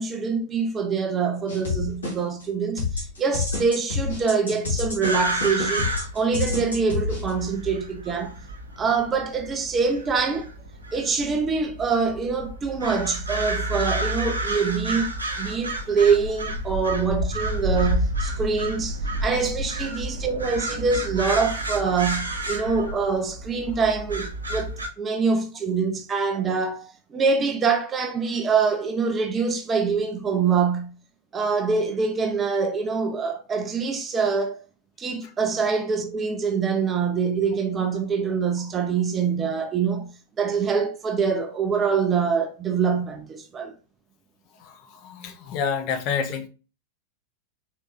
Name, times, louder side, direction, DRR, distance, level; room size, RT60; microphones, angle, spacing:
voice 1, 0.0-8.4 8.8-10.5 10.9-30.9 31.3-34.6 35.0-40.1 40.4-43.7, right 5 dB, 20° right, 0.6 m, -25 dB
sound 1, 1.5-2.4 2.8-7.3, left 4 dB, 70° left, 1.8 m, -28 dB
sound 2, 5.0-24.9, right 1 dB, 80° right, 1.0 m, -30 dB
voice 2, 45.0-46.5, left 6 dB, 40° left, 0.8 m, -28 dB
4.6 x 3.4 x 2.6 m
figure-of-eight pair, 90°, 0 cm